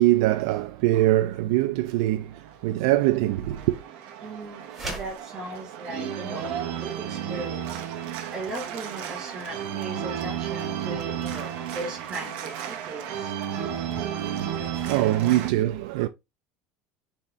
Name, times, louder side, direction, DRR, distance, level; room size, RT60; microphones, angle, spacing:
voice 1, 0.0-3.8 14.3-16.1, right 15 dB, 70° right, 0.4 m, -23 dB
Organ, 2.3-15.5, right 9 dB, 50° right, 0.8 m, -33 dB
voice 2, 4.2-6.5 6.8-7.6 8.3-13.1, right 2 dB, 20° right, 1.5 m, -38 dB
sound 1, 4.7-5.2, right 2 dB, ahead, 2.3 m, -35 dB
4.1 x 3.5 x 3.1 m
cardioid pair, 170°, 3 cm